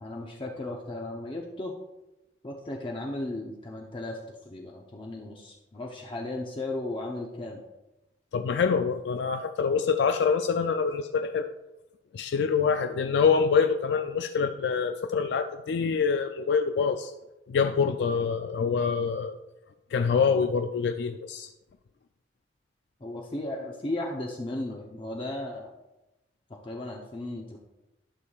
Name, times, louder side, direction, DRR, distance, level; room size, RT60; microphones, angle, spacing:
voice 1, 0.0-1.8 2.4-7.6 18.0-18.1 23.0-25.7 26.6-27.6, left 2 dB, 30° left, -1 dB, 0.7 m, -35 dB
voice 2, 8.3-11.5 12.1-17.1 17.5-19.4 19.9-21.5, left 5 dB, 75° left, 7 dB, 0.3 m, -25 dB
11.5 x 6.2 x 2.4 m, 0.99 s
head